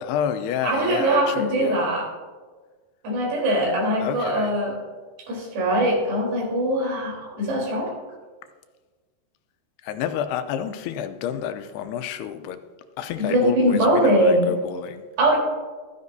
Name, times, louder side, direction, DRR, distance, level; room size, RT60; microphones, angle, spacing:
voice 1, 0.0-1.8 4.0-4.5 9.8-12.6 13.0-15.1, left 9 dB, 85° left, 9 dB, 2.7 m, -29 dB
voice 2, 0.6-2.1 3.0-4.8 5.3-7.9 13.2-14.5 15.2-15.4, right 1 dB, 80° right, -3 dB, 5.8 m, -21 dB
15.0 x 13.0 x 2.7 m, 1.4 s
omnidirectional pair, 4.6 m